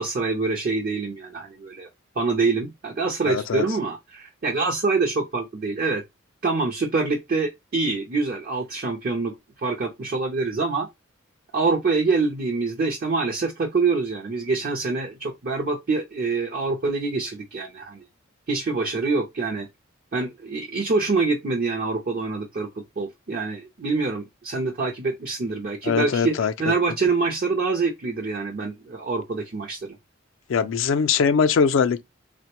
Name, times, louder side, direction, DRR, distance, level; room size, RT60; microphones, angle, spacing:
voice 1, 0.0-1.9 2.2-6.0 6.4-10.9 11.5-18.0 18.5-19.7 20.1-22.7 23.0-30.0, right 3 dB, 45° right, 0.5 m, -25 dB
voice 2, 3.3-3.7 25.8-26.7 30.5-32.0, left 6 dB, 65° left, 0.3 m, -21 dB
3.5 x 2.1 x 2.9 m
head